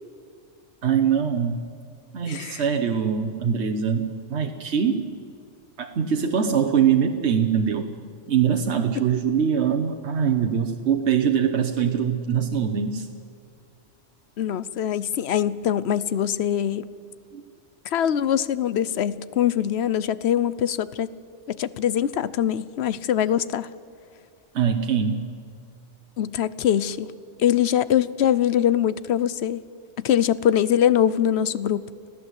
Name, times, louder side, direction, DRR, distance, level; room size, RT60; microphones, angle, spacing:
voice 1, 0.8-1.6 2.1-5.1 5.8-7.9 8.3-13.1 17.3-17.4 24.5-25.3, right 7 dB, 75° right, 4 dB, 1.3 m, -23 dB
voice 2, 2.3-2.6 14.4-16.8 17.8-21.1 21.5-23.7 26.2-27.1 27.4-29.6 30.0-31.9, left 10 dB, 70° left, 17 dB, 1.0 m, -23 dB
25.0 x 16.0 x 8.2 m, 2.4 s
omnidirectional pair, 1.2 m